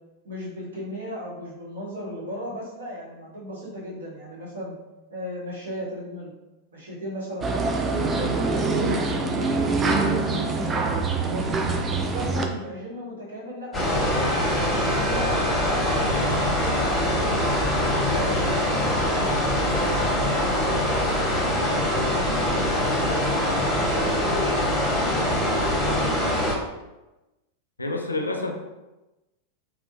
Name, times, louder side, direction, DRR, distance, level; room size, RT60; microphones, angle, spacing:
voice 1, 0.2-4.8 5.1-6.3 6.7-7.5 8.0-9.5 9.8-11.4 11.8-14.3 14.6-17.3 17.7-20.9 21.3-22.7 23.0-26.5, equal, 65° right, -6 dB, 1.2 m, -36 dB
sound 1, 7.4-12.4, right 3 dB, 20° right, 0.4 m, -24 dB
sound 2, 13.7-26.6, left 1 dB, 15° left, 0.9 m, -23 dB
voice 2, 27.8-28.5, left 2 dB, 80° left, 3 dB, 0.4 m, -28 dB
3.5 x 2.3 x 2.6 m, 1.0 s
figure-of-eight pair, 90°, 0 cm